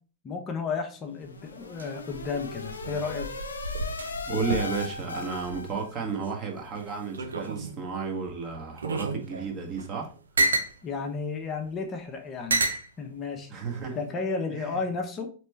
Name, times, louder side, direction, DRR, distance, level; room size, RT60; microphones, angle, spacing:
voice 1, 0.2-3.3 10.8-13.5 13.9-15.3, left 4 dB, 30° left, 0.7 m, -33 dB
sound 1, 1.1-6.1, left 4 dB, 75° left, 0.5 m, -38 dB
sound 2, 1.2-6.3 6.7-7.9 8.5-10.8 11.6-11.7 12.5-12.9 13.7-14.1, right 2 dB, 75° right, 0.5 m, -31 dB
voice 2, 4.3-10.1 13.5-14.0 14.5-14.8, right 5 dB, 35° right, 1.1 m, -33 dB
4.3 x 3.0 x 3.2 m
figure-of-eight pair, 90°, 0 cm